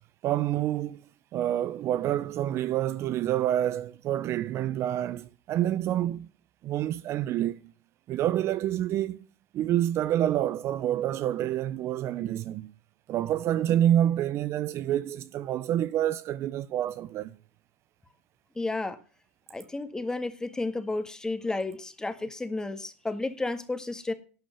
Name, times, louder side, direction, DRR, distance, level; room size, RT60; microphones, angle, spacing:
voice 1, 0.2-1.0 1.3-6.3 6.6-7.7 8.1-9.3 9.5-12.7 13.1-17.3, right 12 dB, 40° right, 0.6 m, -27 dB
voice 2, 18.5-19.0 19.5-24.1, left 2 dB, 10° left, 1.8 m, -32 dB
12.0 x 8.4 x 6.8 m
supercardioid pair, 125°, 7 cm